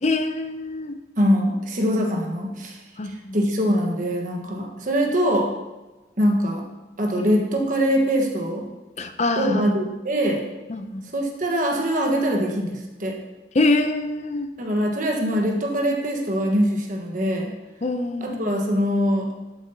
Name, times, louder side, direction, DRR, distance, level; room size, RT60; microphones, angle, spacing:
voice 1, 0.0-1.0 3.0-3.4 9.0-9.7 10.7-11.1 13.5-14.5 17.8-18.5, left 2 dB, 40° left, 8 dB, 0.6 m, -24 dB
voice 2, 1.2-5.5 6.2-6.6 7.0-8.7 9.3-10.4 11.1-13.2 14.6-17.5 18.2-19.3, equal, 45° right, 0 dB, 1.4 m, -23 dB
12.0 x 7.7 x 2.8 m, 1.1 s
head